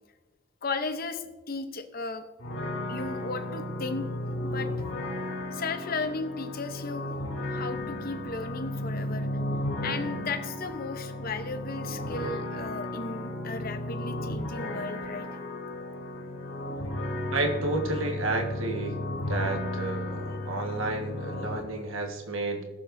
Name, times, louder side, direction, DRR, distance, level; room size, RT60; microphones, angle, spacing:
voice 1, 0.6-2.3 2.9-4.0 4.4-4.7 5.5-7.1 7.5-9.3 9.8-15.3, left 3 dB, 45° left, 8 dB, 0.8 m, -35 dB
sound 1, 2.4-21.6, left 1 dB, 75° left, 3.4 m, -34 dB
voice 2, 17.3-18.9 19.3-22.6, right 2 dB, 70° right, 3 dB, 1.4 m, -31 dB
20.5 x 7.3 x 2.6 m, 1.3 s
head